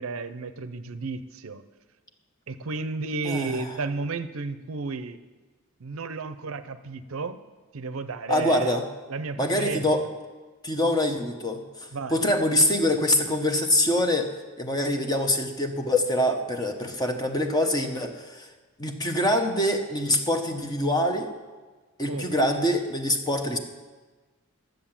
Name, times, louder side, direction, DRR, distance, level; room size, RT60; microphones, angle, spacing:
voice 1, 0.0-1.6 2.5-5.2 5.8-7.4 7.7-8.8 9.1-9.9 11.9-12.2 22.1-22.4, right 4 dB, 65° right, 11 dB, 0.6 m, -33 dB
voice 2, 3.2-3.6 8.3-8.8 9.4-10.0 10.6-14.3 14.6-18.5 18.8-21.3 22.0-23.6, left 1 dB, 20° left, 5 dB, 0.9 m, -24 dB
12.5 x 7.8 x 7.3 m, 1.3 s
head